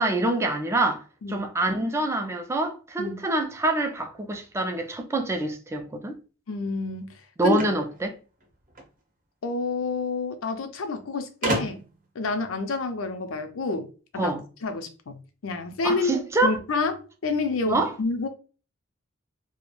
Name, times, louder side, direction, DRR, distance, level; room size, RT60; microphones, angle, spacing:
voice 1, 0.0-1.0 1.3-6.2 7.4-8.1 14.2-14.4 15.8-16.6 17.7-17.9, right 2 dB, 15° right, 0.3 m, -26 dB
voice 2, 6.5-7.1 7.4-7.6 9.4-11.8 12.2-13.9 14.1-14.3 14.6-18.3, left 3 dB, 85° left, 0.5 m, -29 dB
sound 1, 7.5-8.9 10.0-10.1 10.4-10.5 11.4-12.1, right 1 dB, 40° right, 0.7 m, -30 dB
2.3 x 2.0 x 3.0 m
head